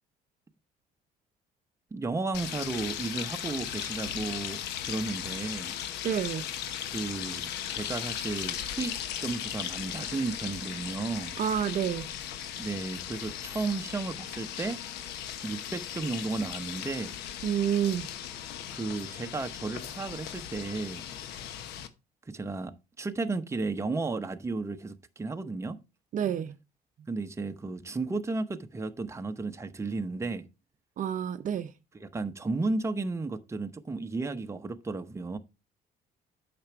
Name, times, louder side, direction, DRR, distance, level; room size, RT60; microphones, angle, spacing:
voice 1, 1.9-5.8 6.9-11.4 12.6-14.8 15.4-17.1 18.7-21.0 22.3-25.8 27.1-30.4 31.9-35.4, right 3 dB, 15° right, 0.9 m, -34 dB
sound 1, 2.3-21.9, left 10 dB, 80° left, 1.0 m, -37 dB
voice 2, 6.0-6.5 11.4-12.1 17.4-18.1 26.1-26.5 31.0-31.7, right 9 dB, 50° right, 0.6 m, -28 dB
8.7 x 6.0 x 4.4 m
cardioid pair, 110°, 17 cm